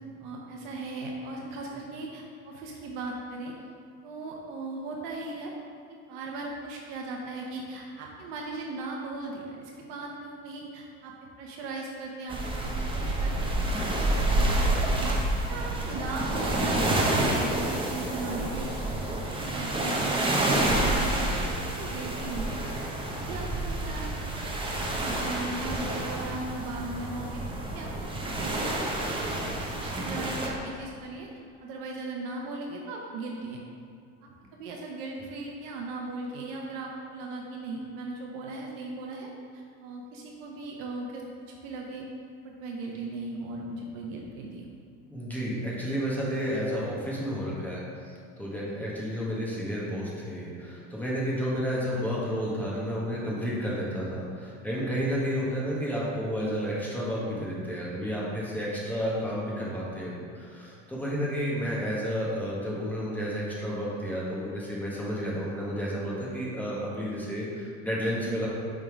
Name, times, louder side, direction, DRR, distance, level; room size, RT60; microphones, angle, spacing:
voice 1, 0.2-3.5 4.0-5.5 5.9-13.7 14.1-15.1 15.5-22.6 23.1-24.2 24.8-27.4 27.7-31.3 31.6-33.6 34.5-41.2 41.6-42.0 42.4-44.6 51.9-52.0, right 2 dB, 70° right, -1 dB, 0.9 m, -38 dB
sound 1, 12.3-30.5, right 1 dB, 15° right, 0.8 m, -28 dB
voice 2, 45.1-47.8 48.4-68.5, equal, 5° left, -6 dB, 1.4 m, -31 dB
5.2 x 3.7 x 4.9 m, 2.3 s
supercardioid pair, 105°, 36 cm